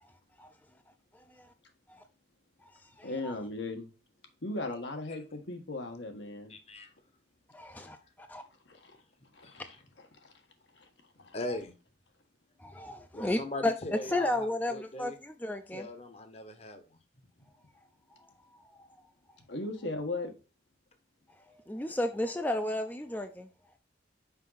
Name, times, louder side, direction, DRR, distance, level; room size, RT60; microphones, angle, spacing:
voice 1, 1.1-1.5 1.9-2.0 2.6-3.3 7.5-8.4 12.6-13.7 14.1-15.9 18.2-18.3 18.6-18.9 21.5-23.5, left 1 dB, 10° left, 0.5 m, -34 dB
voice 2, 3.0-3.9 4.4-6.5 8.7-9.0 9.3-9.6 10.2-10.3 10.7-10.9 11.2-11.3 19.5-20.3, left 2 dB, 80° left, 1.4 m, -37 dB
voice 3, 6.5-6.9 7.7-7.9 9.4-9.7 11.3-11.7 13.1-15.2 15.7-17.0, left 2 dB, 35° left, 0.9 m, -40 dB
5.6 x 4.9 x 4.0 m
head